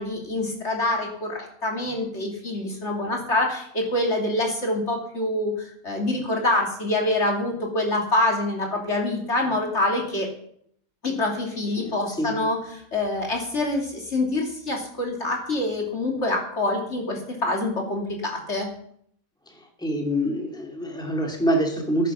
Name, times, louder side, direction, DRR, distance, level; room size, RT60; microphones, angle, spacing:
voice 1, 0.0-10.3 11.0-18.7, left 2 dB, 50° left, 0 dB, 2.9 m, -26 dB
voice 2, 11.8-12.3 19.8-22.1, equal, 5° left, 1 dB, 2.6 m, -25 dB
15.5 x 9.3 x 6.1 m, 0.68 s
omnidirectional pair, 1.5 m